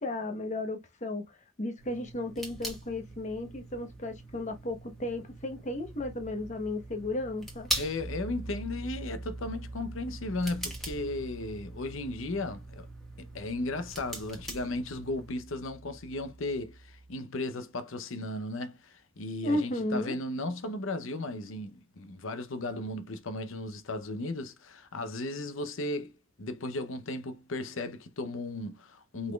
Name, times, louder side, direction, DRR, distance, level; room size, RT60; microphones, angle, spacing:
voice 1, 0.0-1.2 1.6-7.7 19.4-20.2, left 2 dB, 35° left, 1.0 m, -34 dB
Pen clicking, 1.8-15.3, right 1 dB, ahead, 1.5 m, -42 dB
sound 1, 2.5-17.2, right 2 dB, 60° right, 0.6 m, -47 dB
voice 2, 7.8-12.9 13.2-29.3, left 2 dB, 70° left, 0.7 m, -35 dB
5.2 x 4.1 x 2.3 m
head